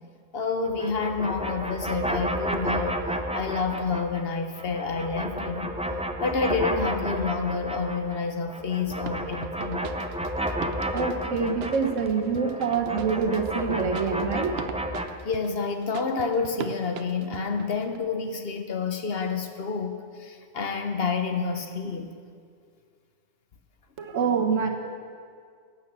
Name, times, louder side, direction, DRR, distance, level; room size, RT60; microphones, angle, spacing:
voice 1, 0.3-3.0 3.3-5.7 6.2-10.0 15.2-22.1, left 4 dB, 55° left, 6 dB, 1.1 m, -29 dB
sound 1, 0.7-4.2 4.5-8.2 8.5-15.1, equal, 10° right, 0.3 m, -32 dB
sound 2, 8.9-18.0, right 8 dB, 60° right, 0.8 m, -40 dB
voice 2, 10.9-14.6 24.0-24.7, right 5 dB, 85° right, 4 dB, 1.6 m, -26 dB
12.0 x 9.0 x 7.5 m, 2.1 s
omnidirectional pair, 1.3 m